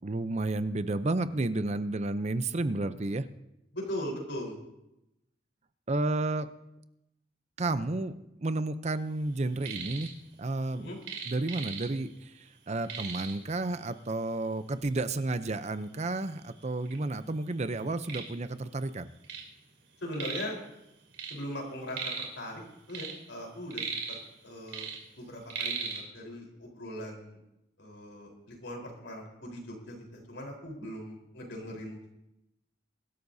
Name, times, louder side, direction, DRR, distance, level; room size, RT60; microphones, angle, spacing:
voice 1, 0.0-3.2 5.9-6.5 7.6-10.1 10.4-10.9 11.3-19.1, right 2 dB, 40° right, 12 dB, 0.6 m, -31 dB
voice 2, 3.7-4.6 10.7-11.0 20.0-20.6 21.3-22.6 22.9-24.0 24.4-24.9 25.2-27.4 27.8-32.1, equal, 90° left, 0 dB, 4.1 m, -40 dB
sound 1, 9.4-10.1 10.4-12.2 12.5-12.6 12.8-13.5 14.3-14.4 14.9-15.0 15.7-15.8 16.1-17.0 17.5-19.5 19.8-20.6 20.9-22.4 22.8-24.4 24.7-26.0, right 5 dB, 80° right, 3.1 m, -38 dB
23.5 x 12.5 x 2.7 m, 0.87 s
head